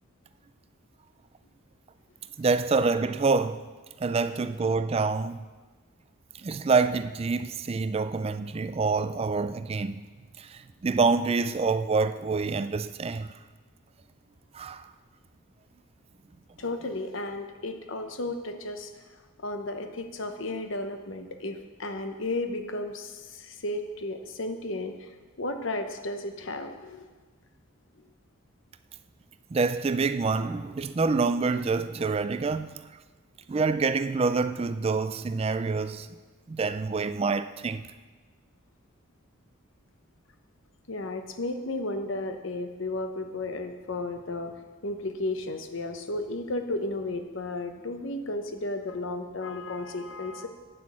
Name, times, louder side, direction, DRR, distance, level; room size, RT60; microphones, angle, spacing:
voice 1, 2.4-3.6 4.0-5.4 6.3-10.0 10.4-13.3 14.5-14.9 29.5-32.8 33.5-36.1 36.5-37.8, right 4 dB, 30° right, 0.3 m, -26 dB
voice 2, 16.6-18.9 19.4-25.1 25.4-27.1 40.9-44.5 44.8-50.5, left 2 dB, 65° left, 0.9 m, -33 dB
9.4 x 6.1 x 7.3 m
head